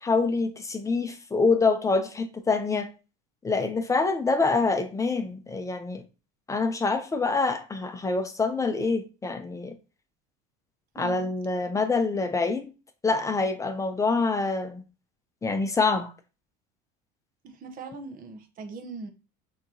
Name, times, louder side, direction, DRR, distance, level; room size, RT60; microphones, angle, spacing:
voice 1, 0.0-2.9 3.4-6.0 6.5-9.7 11.0-12.7 13.0-14.8 15.4-16.1, left 4 dB, 15° left, 0.7 m, -26 dB
voice 2, 11.0-11.3 17.4-19.1, right 4 dB, 45° right, 0.9 m, -40 dB
5.8 x 3.0 x 2.7 m
supercardioid pair, 115°, 20 cm